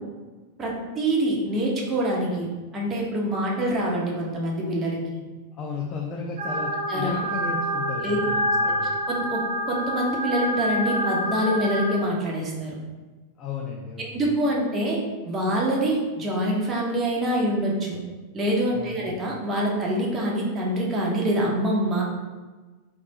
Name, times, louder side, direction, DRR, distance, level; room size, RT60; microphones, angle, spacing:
voice 1, 0.6-2.5 2.7-5.2 6.9-7.2 8.0-8.2 9.1-9.4 9.7-12.8 14.1-15.0 15.2-18.0 18.3-22.0, right 1 dB, 25° right, -3 dB, 1.0 m, -25 dB
voice 2, 5.5-9.0 13.4-14.3 18.7-19.1, left 4 dB, 30° left, -1 dB, 0.6 m, -34 dB
sound 1, 6.4-11.9, equal, 55° right, 0.7 m, -27 dB
3.4 x 3.2 x 4.0 m, 1.3 s
figure-of-eight pair, 90°, 0 cm